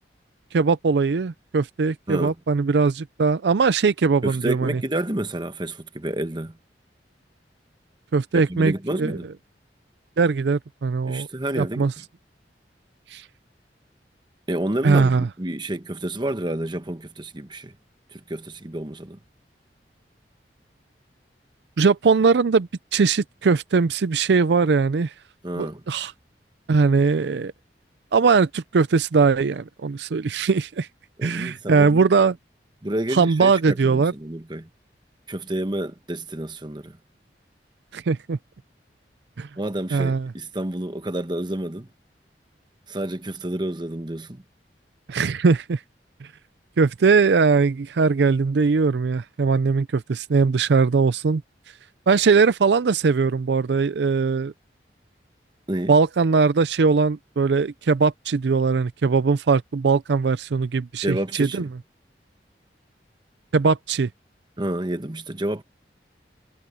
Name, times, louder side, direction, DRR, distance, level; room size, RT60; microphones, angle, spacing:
voice 1, 0.5-4.8 8.1-9.2 10.2-11.3 11.6-11.9 13.1-13.2 14.8-15.3 21.8-25.1 25.6-26.1 26.7-27.5 28.1-30.9 31.2-32.4 33.1-34.1 37.9-38.4 39.4-39.5 39.9-40.3 45.1-45.8 46.8-51.4 52.1-54.5 55.9-61.7 63.5-64.1, right 4 dB, 75° right, 0.5 m, -20 dB
voice 2, 4.2-6.5 8.3-9.3 11.1-12.0 14.5-17.7 18.1-19.2 25.4-25.8 31.2-32.1 32.8-34.7 35.3-37.0 39.6-41.9 42.9-44.4 55.7-55.9 61.0-61.7 64.6-65.6, right 1 dB, 25° right, 1.2 m, -29 dB
head